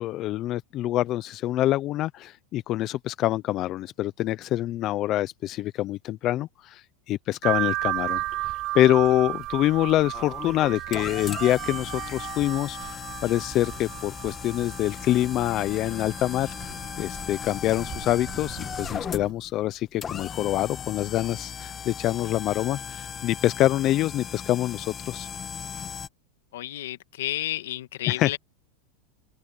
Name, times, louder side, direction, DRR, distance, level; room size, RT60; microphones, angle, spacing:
voice 1, 0.0-25.3 28.1-28.4, left 14 dB, 40° left, 0.7 m, -26 dB
sound 1, 7.4-19.3, right 17 dB, 45° right, 7.3 m, -34 dB
sound 2, 10.1-26.1, left 8 dB, 25° left, 1.8 m, -37 dB
voice 2, 26.5-28.4, left 14 dB, 75° left, 1.8 m, -31 dB
supercardioid pair, 125°, 0 cm